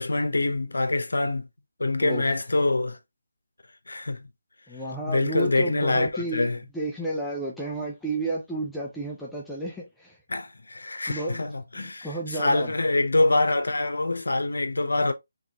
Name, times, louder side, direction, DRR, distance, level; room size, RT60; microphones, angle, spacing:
voice 1, 0.0-1.5 1.8-3.0 3.9-4.2 5.1-6.6 10.3-15.1, left 2 dB, 85° left, 0.7 m, -25 dB
voice 2, 4.7-10.2 11.1-11.5 11.8-12.7, right 1 dB, 5° left, 0.6 m, -32 dB
3.8 x 3.0 x 2.8 m
figure-of-eight pair, 160°, 0 cm